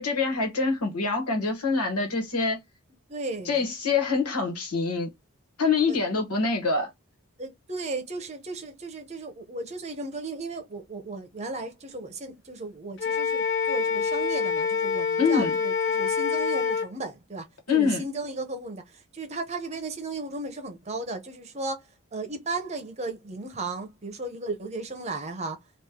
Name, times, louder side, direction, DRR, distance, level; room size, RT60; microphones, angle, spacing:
voice 1, 0.0-2.6 3.4-5.1 5.6-6.9 15.2-15.6 17.7-18.0, left 4 dB, 85° left, 1.4 m, -25 dB
voice 2, 3.1-3.6 5.9-6.0 7.4-25.6, right 3 dB, 30° right, 0.7 m, -35 dB
Wind instrument woodwind instrument, 13.0-16.9, left 6 dB, 55° left, 0.5 m, -26 dB
3.1 x 2.5 x 3.6 m
head